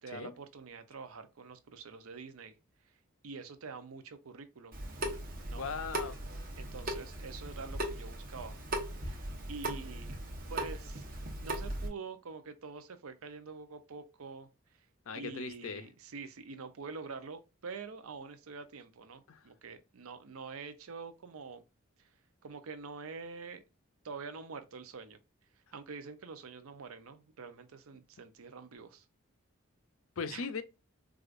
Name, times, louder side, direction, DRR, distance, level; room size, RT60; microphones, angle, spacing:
voice 1, 0.0-2.6 3.2-4.8 5.4-5.7 6.5-8.6 9.0-10.2 10.5-11.1 11.4-14.5 15.1-21.6 22.0-22.1 22.4-23.6 24.0-25.2 25.7-29.0 30.3-30.5, right 4 dB, 85° right, 0.6 m, -46 dB
Water tap faucet / Sink (filling or washing) / Drip, 4.7-11.9, right 1 dB, 40° right, 0.9 m, -38 dB
voice 2, 5.6-6.2 15.1-15.8 19.3-19.4 30.2-30.6, left 5 dB, 75° left, 0.5 m, -39 dB
4.8 x 2.4 x 2.4 m
head